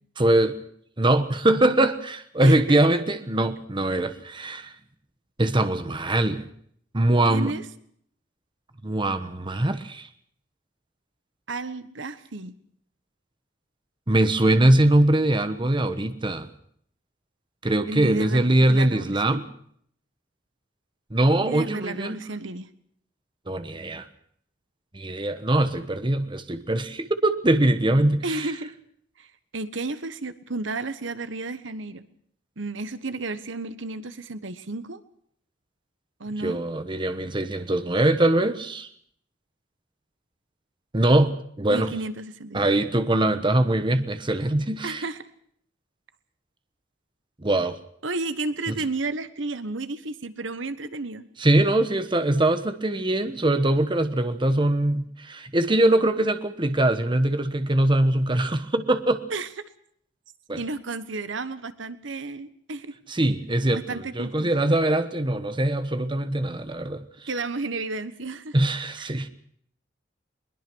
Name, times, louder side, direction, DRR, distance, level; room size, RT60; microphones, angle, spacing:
voice 1, 0.2-0.6 1.0-4.7 5.4-6.4 6.9-7.5 8.8-10.1 14.1-16.5 17.6-19.5 21.1-22.2 23.5-24.1 24.9-28.5 36.4-38.9 40.9-41.9 42.5-45.0 47.4-47.8 48.7-48.8 51.4-59.2 60.5-60.6 63.1-67.0 68.5-69.3, right 1 dB, 25° right, 10 dB, 1.1 m, -22 dB
voice 2, 2.4-2.9 7.3-7.6 11.5-12.6 17.9-19.4 21.4-22.7 28.2-28.7 29.2-32.0 32.6-35.0 36.2-36.6 41.7-42.6 44.8-45.2 48.0-51.2 59.3-59.5 60.6-62.9 63.7-64.5 67.3-68.6 69.0-69.1, right 3 dB, 65° right, 12 dB, 1.3 m, -32 dB
22.0 x 21.0 x 6.3 m, 0.65 s
head